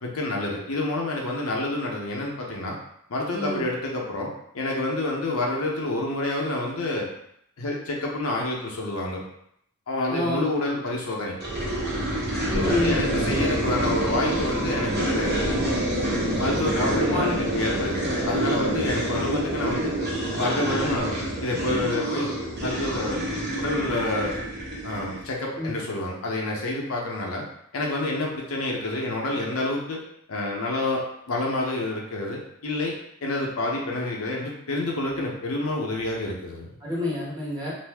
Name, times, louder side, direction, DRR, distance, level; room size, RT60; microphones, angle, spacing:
voice 1, 0.0-2.8 3.1-7.1 7.6-9.2 9.9-11.4 12.5-15.4 16.4-20.0 20.3-21.1 21.4-22.3 22.6-23.2 23.6-24.4 24.8-27.4 27.7-30.0 30.3-32.9 33.2-36.7, left 2 dB, 85° left, -1 dB, 0.7 m, -28 dB
voice 2, 10.1-10.4 10.7-10.8 12.5-13.0 17.1-17.3 25.6-25.8 36.8-37.7, left 1 dB, 20° right, -7 dB, 1.1 m, -28 dB
sound 1, 11.4-25.3, right 1 dB, 50° right, 1.0 m, -27 dB
2.6 x 2.5 x 3.4 m, 0.74 s
head